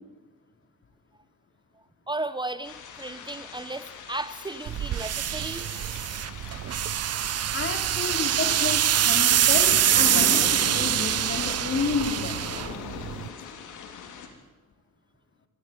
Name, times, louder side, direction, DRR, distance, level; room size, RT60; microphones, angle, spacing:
voice 1, 2.1-5.7, right 2 dB, 15° right, 13 dB, 1.0 m, -34 dB
sound 1, 2.6-14.3, left 6 dB, 80° left, 3.5 m, -39 dB
sound 2, 4.7-13.3, right 11 dB, 55° right, 0.8 m, -24 dB
voice 2, 7.5-12.4, left 5 dB, 40° left, 7 dB, 3.4 m, -31 dB
27.0 x 13.0 x 9.2 m, 1.2 s
cardioid pair, 90°, 30 cm